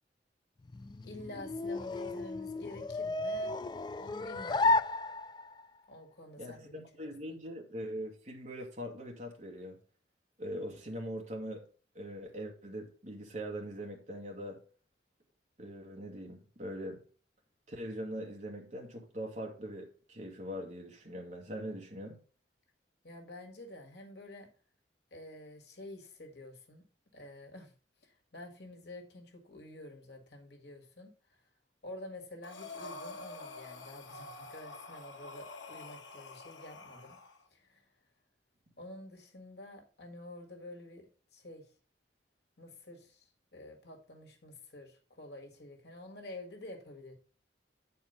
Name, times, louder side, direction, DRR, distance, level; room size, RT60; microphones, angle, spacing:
sound 1, 0.6-5.7, left 2 dB, 25° left, 0.3 m, -33 dB
voice 1, 1.0-3.5 4.0-4.8 5.9-7.4 23.0-24.5 25.1-26.9 27.1-27.7 28.0-31.4 31.8-37.2 37.5-37.9 38.8-41.7 42.6-47.2, left 1 dB, 60° left, 1.7 m, -49 dB
voice 2, 6.4-9.8 10.4-11.6 11.9-14.6 15.6-17.0 17.7-22.2, equal, 40° right, 1.9 m, -42 dB
Breathing, 32.4-37.4, left 3 dB, 90° left, 1.1 m, -47 dB
8.5 x 4.4 x 5.5 m
head